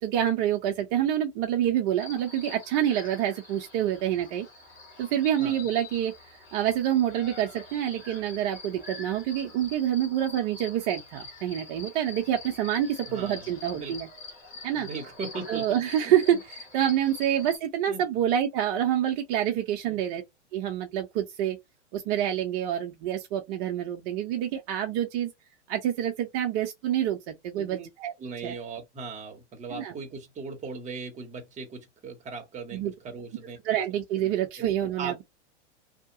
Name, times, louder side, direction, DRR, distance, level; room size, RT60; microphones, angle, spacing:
voice 1, 0.0-4.5 5.0-6.1 6.5-14.1 14.6-14.9 15.5-20.2 20.5-21.6 21.9-25.3 25.7-28.1 28.4-28.6 29.7-29.9 32.7-32.9 33.6-35.2, right 11 dB, 45° right, 0.7 m, -27 dB
sound 1, 2.0-17.6, left 3 dB, 20° left, 1.6 m, -45 dB
voice 2, 13.1-14.0 14.7-15.8 16.0-16.1 17.4-17.5 17.9-18.0 19.9-20.0 27.6-27.9 28.2-33.6 35.0-35.2, right 4 dB, 20° right, 0.9 m, -38 dB
2.7 x 2.1 x 2.6 m
hypercardioid pair, 115°, 36 cm